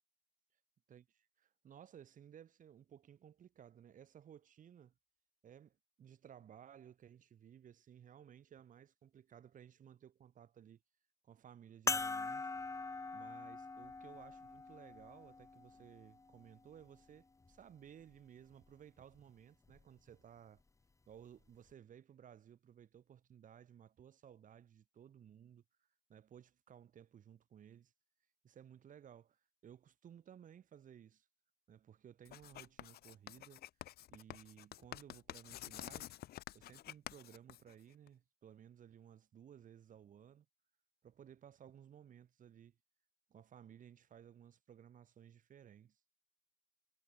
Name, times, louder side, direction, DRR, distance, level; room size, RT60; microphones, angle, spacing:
voice 1, 0.9-4.9 5.4-10.8 11.2-12.5 12.8-20.6 21.1-25.6 26.1-27.9 28.4-31.3 31.7-33.6 34.1-36.2 36.5-40.5 41.0-42.8 43.3-46.0, right 9 dB, 50° right, 7.2 m, -58 dB
sound 1, 11.9-16.7 17.5-17.6 19.7-19.8, left 3 dB, 20° left, 2.0 m, -42 dB
Writing, 32.2-38.1, left 14 dB, 65° left, 1.6 m, -50 dB
cardioid pair, 110°, 17 cm